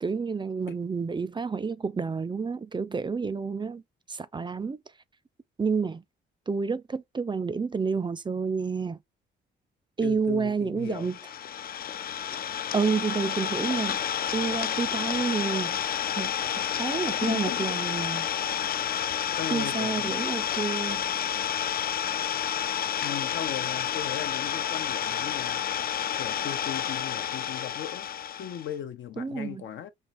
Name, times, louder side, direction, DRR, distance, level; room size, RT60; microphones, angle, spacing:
voice 1, 0.0-3.8 4.1-4.8 5.6-6.0 6.5-9.0 10.0-11.2 12.7-14.0 14.3-15.8 16.2-18.3 19.5-21.0 29.2-29.6, right 5 dB, 25° right, 0.5 m, -29 dB
voice 2, 10.0-11.1 17.2-17.8 19.3-20.1 23.0-25.6 26.2-28.1 28.4-29.9, left 10 dB, 70° left, 0.9 m, -37 dB
Idling, 11.0-28.7, left 9 dB, 50° left, 0.5 m, -30 dB
4.6 x 2.8 x 3.1 m
cardioid pair, 90°, 20 cm